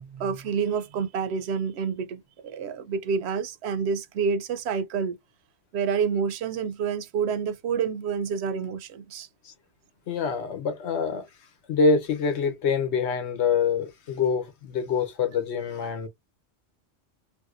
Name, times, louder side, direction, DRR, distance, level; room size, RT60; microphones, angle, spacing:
voice 1, 0.0-5.2 5.7-9.3, right 6 dB, 75° right, 0.8 m, -28 dB
voice 2, 10.1-11.3 11.7-16.1, left 5 dB, 75° left, 1.0 m, -25 dB
3.4 x 2.7 x 2.4 m
omnidirectional pair, 1.2 m